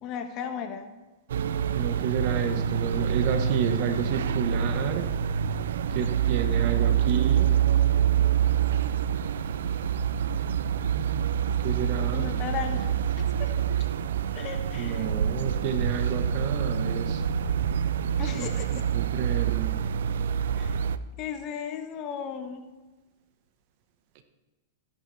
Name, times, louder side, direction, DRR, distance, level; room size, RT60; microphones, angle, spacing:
voice 1, 0.0-0.9 12.1-12.9 13.4-13.5 14.3-15.1 18.2-18.8 20.6-20.8 21.2-22.6, left 8 dB, 40° left, 6 dB, 1.5 m, -35 dB
sound 1, 1.3-21.0, right 8 dB, 75° right, 0.5 m, -26 dB
voice 2, 1.7-5.1 5.9-7.5 11.6-12.3 14.8-17.2 18.4-19.8, right 8 dB, 55° right, 7 dB, 1.5 m, -30 dB
15.5 x 10.5 x 3.6 m, 1.2 s
hypercardioid pair, 115°, 0 cm